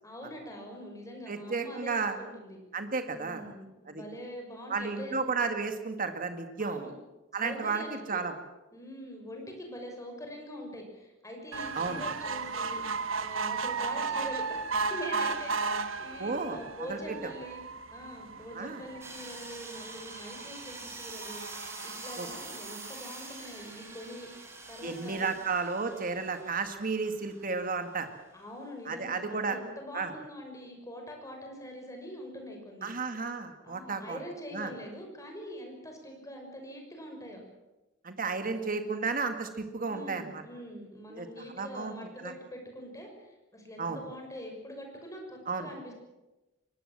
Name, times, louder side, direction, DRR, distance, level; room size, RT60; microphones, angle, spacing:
voice 1, 0.0-2.6 3.1-5.2 6.6-6.9 7.4-8.2 8.7-12.8 13.2-14.6 14.9-17.6 17.9-24.3 24.7-25.3 28.3-32.9 33.6-37.4 38.4-39.0 39.9-45.9, equal, 15° left, 3 dB, 6.1 m, -44 dB
voice 2, 1.3-2.1 2.7-3.4 3.9-4.0 4.7-6.9 7.3-8.3 11.8-12.0 16.2-16.6 16.9-17.3 18.5-18.8 22.2-22.3 24.8-28.1 28.9-29.6 29.9-30.1 32.8-34.2 34.5-34.7 38.0-40.4 41.1-41.3 41.5-41.9 42.2-42.3 43.8-44.0 45.5-45.7, right 4 dB, 45° right, 7 dB, 2.0 m, -33 dB
sound 1, 11.5-24.1 24.7-24.8 25.1-25.2 25.4-25.5, right 4 dB, 70° right, 1.3 m, -36 dB
sound 2, 19.0-27.6, right 2 dB, 15° right, 4.6 m, -46 dB
24.0 x 19.0 x 7.6 m, 1.0 s
head